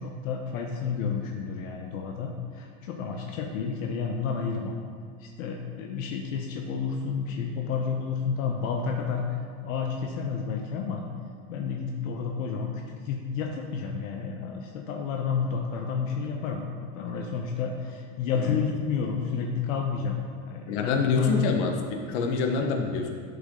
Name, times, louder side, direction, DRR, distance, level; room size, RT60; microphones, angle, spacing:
voice 1, 0.0-4.7 5.2-11.0 11.5-21.3, left 6 dB, 75° left, 2 dB, 1.2 m, -31 dB
voice 2, 20.7-23.1, left 4 dB, 55° left, 2 dB, 1.4 m, -26 dB
12.5 x 7.1 x 3.9 m, 2.2 s
supercardioid pair, 155°, 40 cm